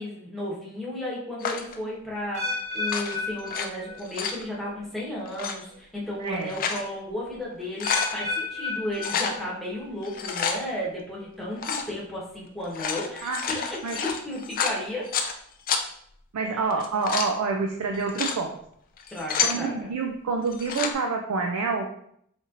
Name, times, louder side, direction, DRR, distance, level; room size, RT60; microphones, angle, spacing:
voice 1, 0.0-15.1 16.5-16.6 19.1-19.9, left 1 dB, ahead, -6 dB, 1.0 m, -34 dB
sound 1, 1.4-1.8 2.8-3.7 4.0-4.4 5.3-5.5 6.2-6.8 7.3-7.4 7.6-8.1 9.0-9.4 10.0-10.6 11.6-11.9 12.6-15.3 15.7-15.8 16.7-17.3 17.9-18.4 19.0-19.6 20.5-20.9, left 6 dB, 40° left, 0.3 m, -29 dB
sound 2, 2.3-4.4 4.6-5.1 5.7-5.8 7.8-9.8 10.1-10.5 11.2-11.3, left 3 dB, 30° right, 0.9 m, -33 dB
voice 2, 6.2-6.5 13.2-14.0 16.3-18.5 19.4-21.9, right 4 dB, 85° right, 3 dB, 0.4 m, -28 dB
4.2 x 2.9 x 2.4 m, 0.69 s
head